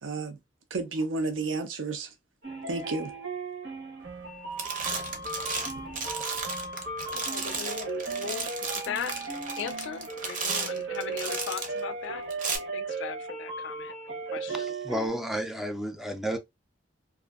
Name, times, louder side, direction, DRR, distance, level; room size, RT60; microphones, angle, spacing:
voice 1, 0.0-0.4 0.7-2.1 2.7-3.1, right 3 dB, 85° right, 0.5 m, -31 dB
sound 1, 2.4-15.1, right 3 dB, 70° right, 0.9 m, -36 dB
sound 2, 4.1-4.3 4.6-11.8 12.3-12.6, right 4 dB, 45° right, 0.6 m, -34 dB
voice 2, 7.1-12.3 12.7-14.7, left 6 dB, 75° left, 0.4 m, -38 dB
voice 3, 14.5-16.4, equal, ahead, 0.3 m, -32 dB
2.6 x 2.4 x 2.3 m
head